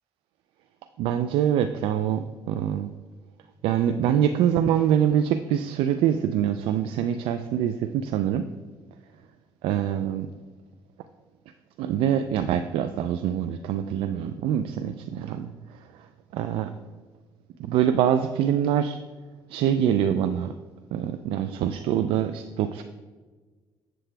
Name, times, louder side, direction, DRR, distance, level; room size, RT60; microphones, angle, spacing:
voice 1, 1.0-2.9 3.6-8.5 9.6-10.3 11.8-15.5 16.0-16.1 16.3-16.7 17.7-19.0 19.5-20.5 20.9-22.8, right 9 dB, 85° right, 9 dB, 0.4 m, -24 dB
7.6 x 7.6 x 3.3 m, 1.4 s
cardioid pair, 100°, 9 cm